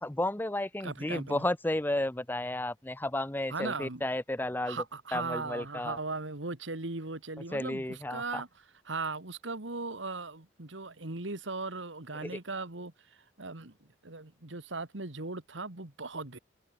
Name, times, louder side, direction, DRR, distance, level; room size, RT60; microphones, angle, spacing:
voice 1, 0.0-4.8 5.1-6.0 7.5-8.4 12.2-12.4, left 1 dB, 10° left, 0.6 m, -33 dB
voice 2, 0.8-1.4 3.5-4.0 4.7-8.5 8.9-12.9 13.4-13.7 14.0-16.4, right 3 dB, 90° right, 2.2 m, -38 dB
open air
head